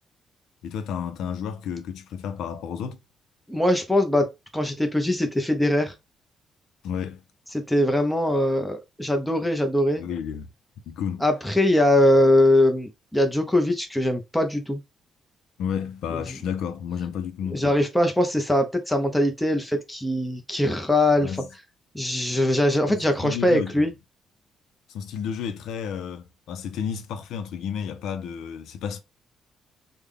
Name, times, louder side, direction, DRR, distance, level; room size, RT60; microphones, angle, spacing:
voice 1, 0.6-3.0 6.8-7.2 10.0-10.5 10.9-11.2 15.6-17.7 21.2-21.5 22.9-23.9 24.9-29.0, left 7 dB, 85° left, 0.5 m, -32 dB
voice 2, 3.5-5.9 7.5-10.1 11.2-14.8 17.5-21.3 21.9-23.9, left 1 dB, 5° left, 0.7 m, -22 dB
3.4 x 2.2 x 3.5 m
cardioid pair, 140°, 0 cm